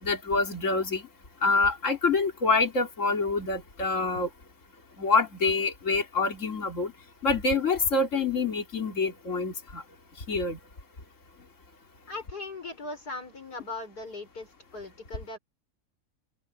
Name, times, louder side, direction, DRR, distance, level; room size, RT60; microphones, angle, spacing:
voice 1, 0.0-1.1 1.4-4.3 5.0-6.9 7.2-9.8 10.3-10.6, left 3 dB, 50° left, 3.5 m, -26 dB
voice 2, 12.1-15.4, left 2 dB, 70° left, 6.4 m, -39 dB
open air
omnidirectional pair, 1.7 m